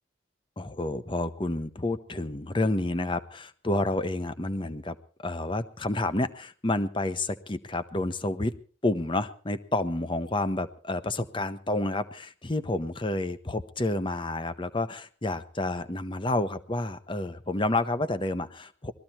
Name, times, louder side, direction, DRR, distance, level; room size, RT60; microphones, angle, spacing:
voice 1, 0.6-8.5 8.8-18.9, left 2 dB, 25° left, 13 dB, 0.9 m, -29 dB
20.5 x 14.0 x 4.3 m, 0.39 s
head